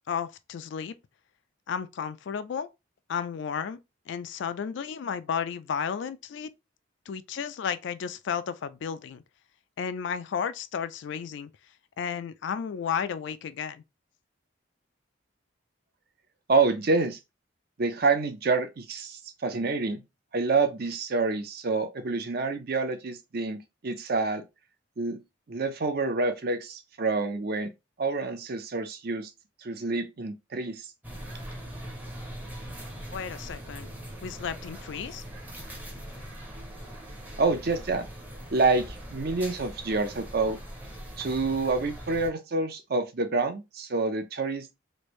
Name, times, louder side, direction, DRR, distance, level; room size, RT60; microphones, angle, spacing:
voice 1, 0.1-0.9 1.7-2.7 3.1-3.8 4.1-6.5 7.1-9.2 9.8-11.5 12.0-13.8 33.1-33.9 34.2-35.2, left 7 dB, 60° left, 0.3 m, -33 dB
voice 2, 16.5-17.2 17.8-20.0 20.3-23.6 23.8-24.4 25.0-25.2 25.5-27.7 28.0-29.3 29.6-30.9 37.4-38.1 38.5-40.6 41.2-44.7, right 3 dB, 45° right, 0.5 m, -27 dB
sound 1, 31.0-42.3, equal, 10° right, 0.6 m, -41 dB
3.2 x 2.6 x 3.1 m
head